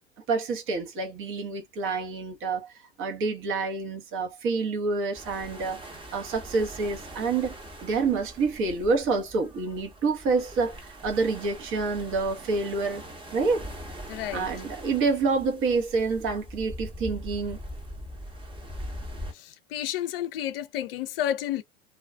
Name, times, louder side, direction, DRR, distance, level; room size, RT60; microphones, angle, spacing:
voice 1, 0.3-2.7 3.0-7.6 7.8-13.0 13.3-13.7 14.3-17.6, right 4 dB, 40° right, 1.0 m, -28 dB
sound 1, 5.1-19.3, equal, 15° right, 1.0 m, -41 dB
voice 2, 14.1-14.5 19.3-21.6, left 11 dB, 65° left, 0.5 m, -31 dB
2.4 x 2.3 x 2.2 m
hypercardioid pair, 85°, 31 cm